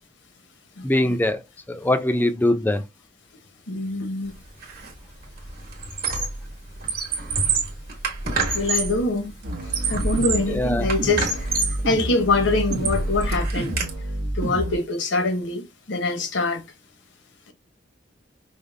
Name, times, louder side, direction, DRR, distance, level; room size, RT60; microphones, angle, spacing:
voice 1, 0.8-1.4 1.7-2.8 10.5-10.9, left 1 dB, 10° left, 0.4 m, -22 dB
voice 2, 3.7-4.3 8.2-9.3 9.9-11.5 11.8-13.8 14.4-15.6 15.9-16.6, left 3 dB, 75° left, 0.8 m, -24 dB
Squeak, 4.6-4.9 5.2-6.5 6.8-9.0 9.5-10.5 10.9-11.8 12.3-13.9, right 4 dB, 55° right, 1.2 m, -27 dB
sound 1, 9.4-14.8, right 1 dB, 80° right, 0.9 m, -29 dB
5.0 x 2.1 x 2.5 m
head